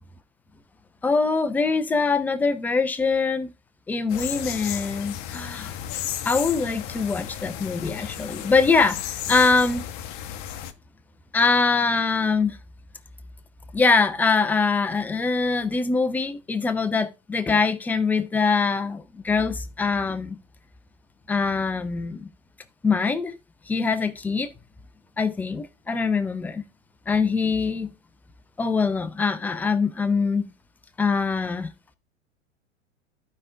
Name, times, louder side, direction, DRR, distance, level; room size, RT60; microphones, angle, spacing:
voice 1, 1.0-3.5 3.9-5.7 6.2-9.0 9.3-9.9 11.3-12.6 13.7-20.4 21.3-22.3 22.8-23.4 23.7-24.5 25.2-26.6 27.1-27.9 28.6-30.5 31.0-31.7, left 4 dB, 5° left, 0.4 m, -23 dB
sound 1, 4.1-10.7, left 11 dB, 35° left, 0.9 m, -34 dB
14.5 x 5.1 x 2.4 m
figure-of-eight pair, 95°, 37 cm